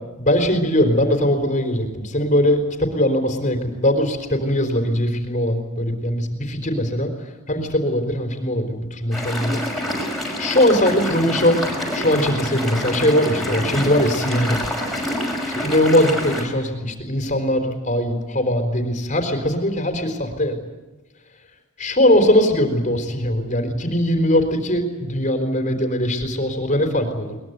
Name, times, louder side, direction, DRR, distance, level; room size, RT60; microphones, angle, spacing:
voice 1, 0.2-7.1 7.5-9.6 10.4-11.6 11.9-14.6 15.6-20.5 21.8-27.4, left 1 dB, 35° left, 6 dB, 3.9 m, -20 dB
sound 1, 9.1-16.4, left 1 dB, ahead, 6.2 m, -27 dB
22.0 x 21.5 x 9.5 m, 1.2 s
head